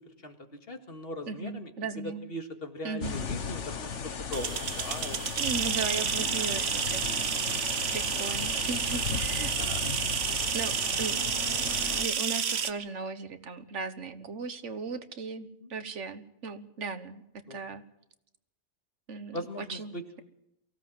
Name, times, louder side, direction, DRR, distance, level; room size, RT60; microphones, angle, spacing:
voice 1, 0.2-1.7 2.0-5.3 9.4-9.8 15.6-15.8 17.5-17.6 19.3-20.0, left 1 dB, 50° left, 6 dB, 2.2 m, -40 dB
voice 2, 1.3-2.3 2.8-3.2 5.4-7.3 7.9-9.5 10.5-17.2 17.5-17.8 19.1-19.9, right 4 dB, 75° right, 11 dB, 1.6 m, -37 dB
sound 1, 3.0-12.1, left 6 dB, 75° left, 1.6 m, -36 dB
sound 2, 4.3-12.7, right 7 dB, 60° right, 1.2 m, -30 dB
23.5 x 16.5 x 7.7 m, 0.82 s
omnidirectional pair, 1.2 m